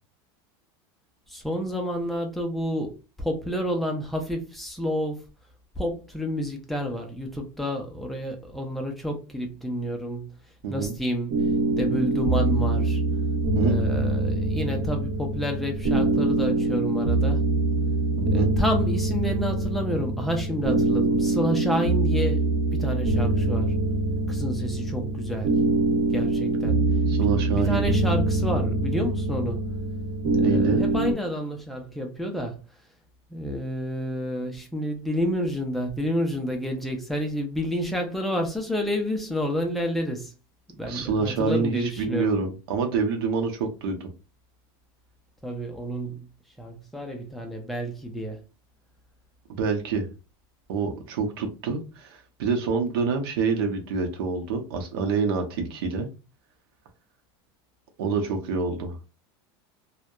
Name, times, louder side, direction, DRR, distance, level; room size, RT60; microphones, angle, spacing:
voice 1, 1.3-5.2 5.8-10.3 10.7-11.3 11.8-13.0 13.6-17.4 18.3-23.7 24.3-25.5 26.1-26.8 27.6-29.7 30.3-32.6 33.3-40.3 40.8-42.3 45.4-46.3 46.6-48.4, equal, ahead, 0.4 m, -29 dB
voice 2, 10.6-11.0 13.5-13.9 18.2-18.5 27.1-28.0 30.4-30.8 40.8-44.1 49.5-50.1 50.7-56.1 58.0-59.0, right 5 dB, 75° right, 0.7 m, -27 dB
sound 1, 11.3-31.1, right 2 dB, 50° right, 1.0 m, -24 dB
2.7 x 2.1 x 2.2 m
supercardioid pair, 170°, 13 cm